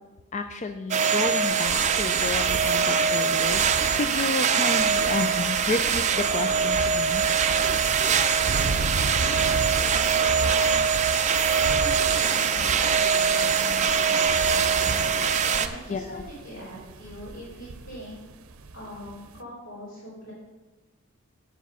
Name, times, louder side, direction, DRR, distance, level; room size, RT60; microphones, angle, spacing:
voice 1, 0.3-3.6 3.9-7.3 15.9-16.2, left 3 dB, 35° left, 7 dB, 0.4 m, -31 dB
sound 1, 0.9-15.7, right 6 dB, 35° right, 0.5 m, -23 dB
sound 2, 1.7-19.4, right 3 dB, 80° right, 0.6 m, -36 dB
voice 2, 9.1-10.9 11.8-18.2 18.7-20.3, equal, 65° left, -9 dB, 3.6 m, -41 dB
8.1 x 7.4 x 5.6 m, 1.1 s
head